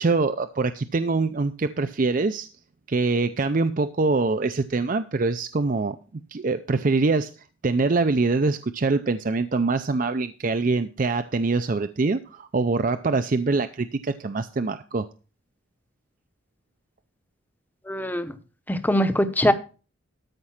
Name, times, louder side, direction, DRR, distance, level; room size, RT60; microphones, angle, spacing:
voice 1, 0.0-2.5 2.9-6.0 6.3-7.3 7.6-15.1, right 3 dB, 40° right, 10 dB, 0.5 m, -24 dB
voice 2, 17.9-18.3 18.7-19.5, left 1 dB, 10° left, 10 dB, 0.8 m, -22 dB
13.0 x 5.4 x 5.8 m, 0.35 s
head